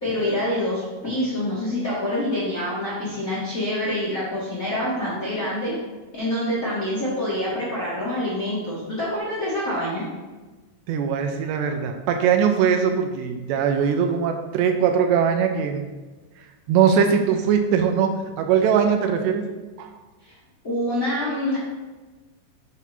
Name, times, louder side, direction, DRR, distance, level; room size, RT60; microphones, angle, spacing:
voice 1, 0.0-5.7 6.1-10.0 20.2-20.3 20.6-21.6, left 1 dB, 45° left, -8 dB, 1.0 m, -26 dB
voice 2, 10.9-15.8 16.7-19.4 19.8-19.9, right 7 dB, 80° right, 5 dB, 2.9 m, -21 dB
9.0 x 6.4 x 2.7 m, 1.3 s
omnidirectional pair, 5.0 m